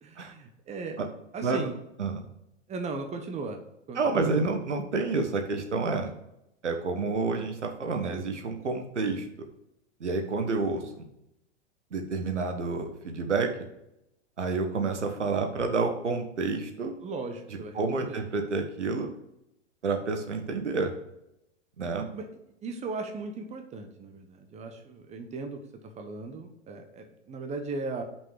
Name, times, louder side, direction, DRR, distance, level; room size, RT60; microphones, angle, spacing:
voice 1, 0.0-1.0 1.3-1.8 2.7-3.6 3.9-4.5 17.0-18.2 22.1-22.3 22.6-28.0, right 3 dB, 20° right, 5 dB, 1.1 m, -37 dB
voice 2, 3.9-6.1 6.6-9.3 10.0-11.0 11.9-13.5 14.4-17.0 17.7-19.1 19.8-20.9 21.8-22.1, right 4 dB, 75° right, 5 dB, 1.6 m, -29 dB
6.1 x 5.3 x 6.5 m, 0.83 s
figure-of-eight pair, 100°, 35 cm